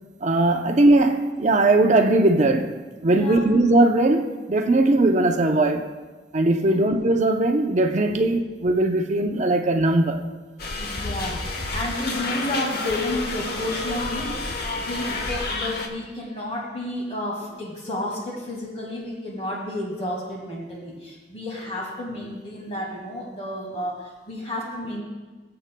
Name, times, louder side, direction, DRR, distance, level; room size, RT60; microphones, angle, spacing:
voice 1, 0.2-5.9 6.3-10.3, right 2 dB, 40° right, 0.6 m, -19 dB
voice 2, 3.1-3.4 6.6-6.8 8.1-8.2 10.8-25.0, left 1 dB, 35° left, 1.8 m, -31 dB
sound 1, 10.6-15.9, left 3 dB, 60° left, 1.0 m, -30 dB
20.5 x 7.8 x 2.2 m
head